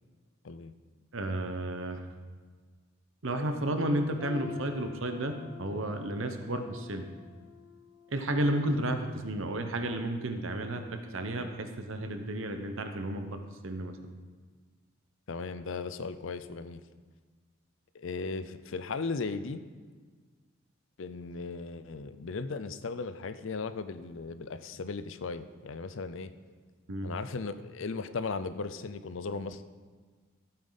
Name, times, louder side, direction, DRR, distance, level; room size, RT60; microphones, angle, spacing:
voice 1, 1.1-2.1 3.2-7.1 8.1-10.8 11.1-14.0 26.9-27.1, right 1 dB, 70° right, 6 dB, 1.0 m, -32 dB
sound 1, 4.2-10.1 10.5-10.8 11.5-11.6, left 7 dB, 25° left, 2.6 m, -48 dB
voice 2, 15.3-16.8 17.9-19.6 21.0-26.3 27.0-29.7, left 4 dB, 65° left, 12 dB, 0.5 m, -37 dB
14.5 x 8.8 x 4.0 m, 1.5 s
head